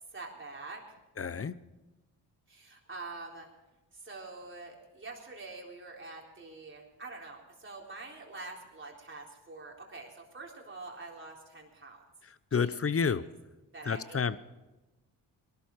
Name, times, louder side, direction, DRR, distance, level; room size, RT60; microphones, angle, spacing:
voice 1, 0.1-0.8 2.5-3.5 3.9-12.0 12.5-13.2 13.7-14.3, right 3 dB, 25° right, -1 dB, 3.9 m, -46 dB
voice 2, 1.2-1.5 12.5-13.2 13.9-14.4, left 6 dB, 30° left, 16 dB, 0.8 m, -29 dB
19.0 x 12.5 x 4.7 m, 1.1 s
supercardioid pair, 60°, 47 cm